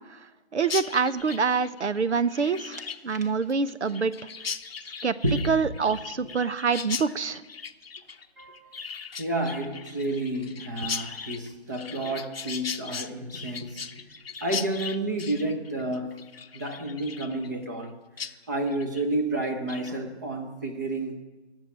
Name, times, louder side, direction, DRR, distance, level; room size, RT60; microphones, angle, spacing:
voice 1, 0.5-4.1 5.0-5.1 5.4-7.4, right 5 dB, 75° right, 0.9 m, -26 dB
Chirp tweet, 0.6-17.9 18.2-18.3 18.7-19.1 19.4-19.9, left 6 dB, 55° left, 0.8 m, -38 dB
voice 2, 8.4-8.7 9.2-13.8 14.4-16.2 16.5-17.9 18.5-21.2, right 1 dB, 15° right, 0.8 m, -30 dB
16.0 x 7.4 x 9.8 m
figure-of-eight pair, 160°, 34 cm